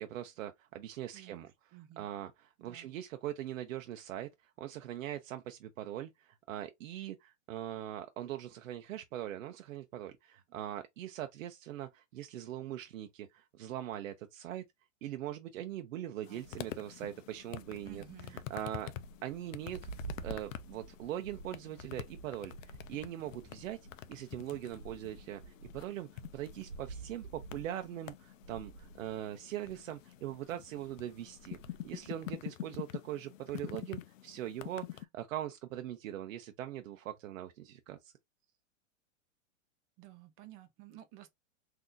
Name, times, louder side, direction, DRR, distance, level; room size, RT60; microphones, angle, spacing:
voice 1, 0.0-14.6 15.0-18.0 18.3-18.9 19.2-19.8 20.2-23.8 24.1-38.1, right 12 dB, 75° right, 0.6 m, -41 dB
voice 2, 1.1-2.1 2.6-2.9 16.2-16.5 17.8-18.4 40.0-41.3, right 15 dB, 20° right, 0.4 m, -53 dB
sound 1, 16.2-35.0, left 13 dB, 70° left, 0.6 m, -47 dB
sound 2, 16.4-16.7 17.4-29.9 30.2-30.4 30.7-32.3, right 4 dB, 90° right, 1.0 m, -50 dB
3.7 x 2.7 x 2.5 m
hypercardioid pair, 135°, 40 cm